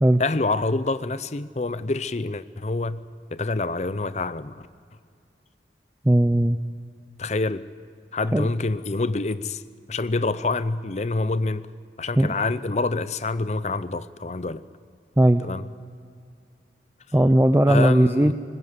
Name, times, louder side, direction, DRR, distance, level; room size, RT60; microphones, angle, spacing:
voice 1, 0.2-3.0 3.3-4.5 7.2-7.6 8.1-9.6 9.9-11.6 12.0-14.6 15.4-15.7 17.7-18.3, left 3 dB, 40° left, 15 dB, 0.6 m, -26 dB
voice 2, 6.0-6.6 8.3-8.5 12.2-12.3 15.2-15.5 17.1-18.3, right 1 dB, 10° right, 9 dB, 0.4 m, -18 dB
20.5 x 19.5 x 8.1 m, 2.3 s
head